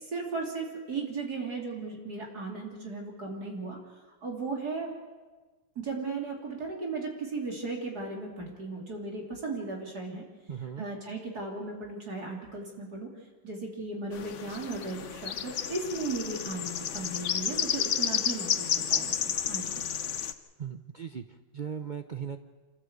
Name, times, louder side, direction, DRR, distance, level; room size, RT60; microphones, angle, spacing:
voice 1, 0.1-3.8 4.0-4.9 5.7-10.2 10.8-13.1 13.4-19.9, right 3 dB, 55° right, 0 dB, 3.4 m, -36 dB
voice 2, 10.5-10.9 20.6-22.4, right 7 dB, 90° right, 7 dB, 0.4 m, -38 dB
sound 1, 14.1-20.3, left 8 dB, 50° left, 0.9 m, -31 dB
26.0 x 15.0 x 8.0 m, 1.3 s
omnidirectional pair, 2.0 m